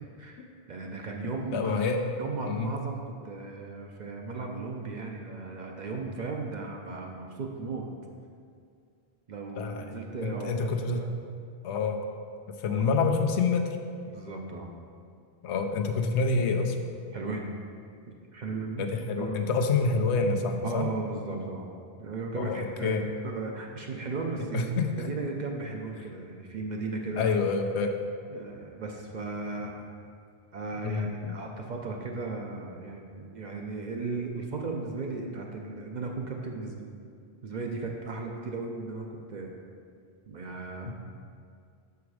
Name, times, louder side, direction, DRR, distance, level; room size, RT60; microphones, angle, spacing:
voice 1, 0.0-1.9 2.2-7.9 9.3-10.7 10.9-11.1 12.7-12.8 14.1-14.7 17.1-17.5 18.3-18.9 19.2-19.4 20.6-21.7 22.0-27.4 28.3-29.7 30.5-36.9 37.4-39.5 40.3-40.9, right 3 dB, 50° right, 1 dB, 0.6 m, -36 dB
voice 2, 1.5-2.0 2.5-2.7 9.6-9.8 10.2-11.0 11.6-12.0 12.6-13.7 15.4-16.8 18.8-20.9 22.4-23.0 24.5-25.1 27.2-27.9 30.8-31.1 40.9-41.0, left 4 dB, 85° left, 5 dB, 0.9 m, -27 dB
5.9 x 4.7 x 4.7 m, 2.3 s
omnidirectional pair, 1.1 m